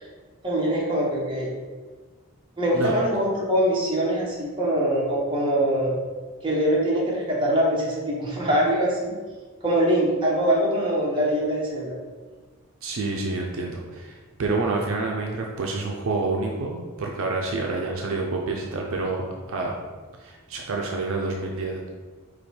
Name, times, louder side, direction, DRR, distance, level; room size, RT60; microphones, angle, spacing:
voice 1, 0.4-1.5 2.6-5.9 6.4-9.2 9.6-12.0, right 1 dB, 20° right, -5 dB, 0.9 m, -23 dB
voice 2, 12.8-19.8 20.2-21.9, right 3 dB, 60° right, 0 dB, 0.5 m, -28 dB
5.0 x 2.2 x 4.2 m, 1.4 s
head